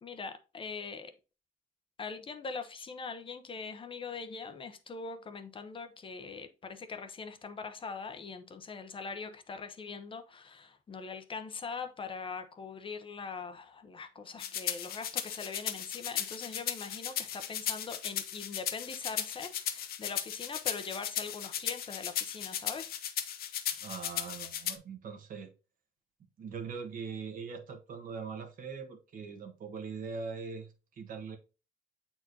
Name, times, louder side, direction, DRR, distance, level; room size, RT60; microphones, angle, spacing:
voice 1, 0.0-1.1 2.0-23.0, left 5 dB, 30° left, 0.7 m, -42 dB
sound 1, 14.4-24.7, left 10 dB, 60° left, 0.9 m, -36 dB
voice 2, 23.8-25.5 26.4-31.4, right 5 dB, 55° right, 1.4 m, -41 dB
7.8 x 4.4 x 2.7 m
cardioid pair, 110°, 17 cm